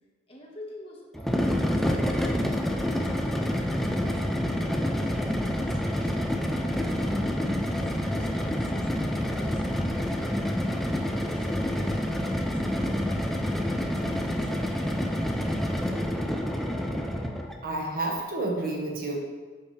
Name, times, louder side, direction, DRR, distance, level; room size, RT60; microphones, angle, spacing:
voice 1, 0.3-3.6 4.0-8.9 9.3-10.4 10.7-15.6, left 1 dB, 30° left, -2 dB, 1.4 m, -48 dB
sound 1, 1.1-17.6, equal, ahead, 0.5 m, -28 dB
voice 2, 17.6-19.2, right 2 dB, 50° right, 0 dB, 1.3 m, -30 dB
10.5 x 5.8 x 3.3 m, 1.4 s
head